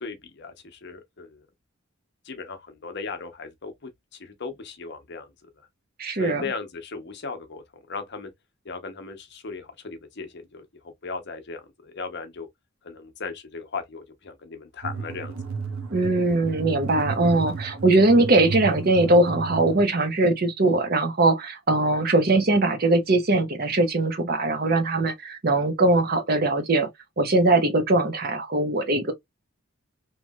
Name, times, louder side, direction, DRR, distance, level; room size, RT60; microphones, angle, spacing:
voice 1, 0.0-1.4 2.2-5.3 6.2-8.3 8.6-12.5 12.8-15.3, left 4 dB, 55° left, 0.7 m, -37 dB
voice 2, 6.0-6.4 15.9-26.9 27.2-29.1, right 2 dB, 45° right, 0.7 m, -21 dB
sound 1, 14.8-19.8, right 5 dB, 80° right, 0.8 m, -33 dB
3.1 x 2.8 x 2.2 m
head